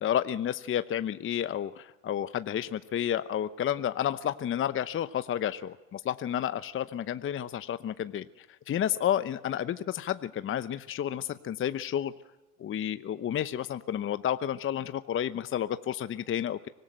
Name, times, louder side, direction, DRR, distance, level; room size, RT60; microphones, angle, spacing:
voice 1, 0.0-12.1 12.6-16.7, left 10 dB, 30° left, 13 dB, 0.9 m, -31 dB
24.5 x 19.5 x 9.1 m, 1.0 s
hypercardioid pair, 80°, 43 cm